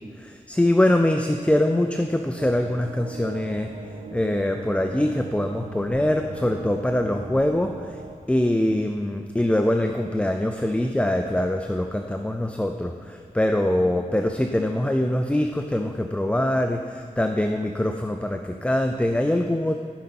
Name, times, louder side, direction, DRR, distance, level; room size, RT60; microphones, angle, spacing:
voice 1, 0.2-8.0 8.3-19.8, left 1 dB, 10° left, 5 dB, 0.5 m, -23 dB
sound 1, 2.4-8.1, right 4 dB, 75° right, 0.9 m, -39 dB
14.5 x 5.3 x 6.0 m, 2.3 s
wide cardioid pair, 90°, 14 cm